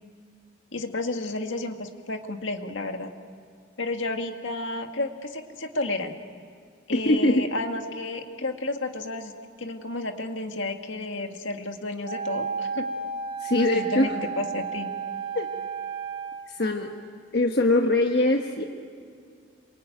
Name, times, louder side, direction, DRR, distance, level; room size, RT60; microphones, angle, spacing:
voice 1, 0.7-3.1 3.8-6.2 6.9-9.3 9.6-12.9 13.6-14.9, left 2 dB, 75° left, 5 dB, 1.9 m, -31 dB
voice 2, 6.9-7.4 13.4-14.1 15.3-15.5 16.5-16.9 17.3-18.6, left 2 dB, 55° left, 3 dB, 1.3 m, -22 dB
Wind instrument woodwind instrument, 12.0-16.5, right 6 dB, 30° right, 5.6 m, -32 dB
27.5 x 24.0 x 9.2 m, 2.2 s
head